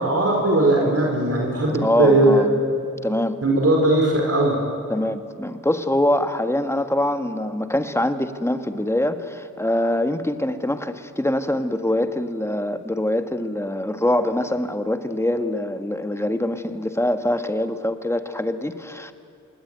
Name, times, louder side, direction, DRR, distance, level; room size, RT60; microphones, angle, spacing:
voice 1, 0.0-2.4 3.4-4.6, right 2 dB, 45° right, -1 dB, 5.0 m, -18 dB
voice 2, 1.8-2.6 3.0-3.4 4.9-19.1, left 1 dB, 10° left, 8 dB, 1.6 m, -24 dB
27.0 x 21.0 x 9.3 m, 2.4 s
wide cardioid pair, 85°, 32 cm